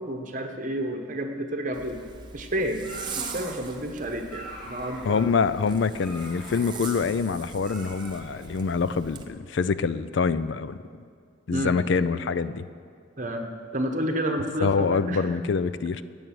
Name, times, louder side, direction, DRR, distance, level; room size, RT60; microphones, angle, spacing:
voice 1, 0.0-2.0 2.3-2.8 3.1-5.3 11.5-11.8 13.2-15.3, equal, 40° right, 4 dB, 1.1 m, -30 dB
Zipper (clothing), 1.7-9.3, right 5 dB, 20° right, 0.7 m, -41 dB
sound 1, 2.7-8.7, equal, 5° left, 3.5 m, -45 dB
voice 2, 5.0-10.8 11.5-12.6 14.6-16.0, left 5 dB, 60° left, 14 dB, 0.4 m, -25 dB
11.0 x 8.0 x 9.5 m, 2.2 s
head